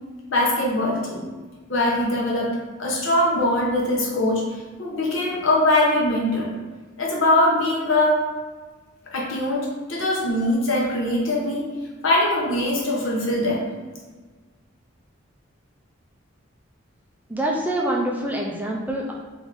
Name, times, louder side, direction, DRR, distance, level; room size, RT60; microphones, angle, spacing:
voice 1, 0.3-1.3 1.7-2.5 2.8-4.5 4.8-6.5 7.0-8.2 9.1-11.7 12.0-13.7, left 1 dB, 75° left, -3 dB, 1.0 m, -22 dB
voice 2, 17.3-19.1, right 1 dB, 10° right, -2 dB, 0.4 m, -25 dB
3.7 x 3.1 x 3.6 m, 1.4 s
head